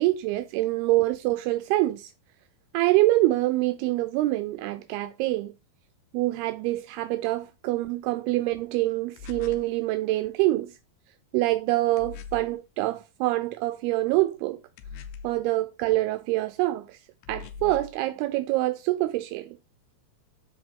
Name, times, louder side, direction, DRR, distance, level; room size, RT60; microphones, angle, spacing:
voice 1, 0.0-2.1 2.7-5.5 6.1-10.8 11.3-14.6 15.2-17.0 17.3-19.6, right 17 dB, 85° right, 2.5 m, -25 dB
sound 1, 9.2-9.7 12.0-12.6 14.8-15.4 17.2-18.0, left 6 dB, 90° left, 2.7 m, -41 dB
12.5 x 4.3 x 3.6 m
omnidirectional pair, 4.6 m